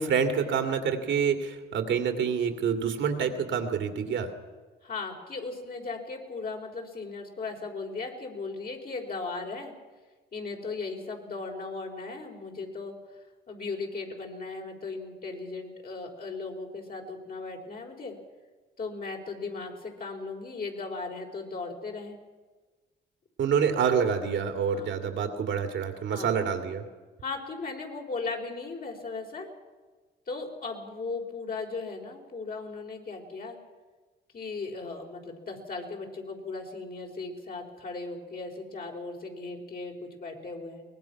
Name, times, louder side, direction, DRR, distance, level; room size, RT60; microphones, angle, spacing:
voice 1, 0.0-4.3 23.4-26.8, right 7 dB, 70° right, 6 dB, 2.4 m, -27 dB
voice 2, 4.8-9.7 10.3-12.9 13.5-18.2 18.8-22.2 24.6-24.9 26.1-26.3 27.2-29.5 30.3-33.6 34.3-40.8, left 3 dB, 50° left, 1 dB, 4.4 m, -37 dB
23.0 x 19.5 x 5.9 m, 1.3 s
cardioid pair, 90°, 20 cm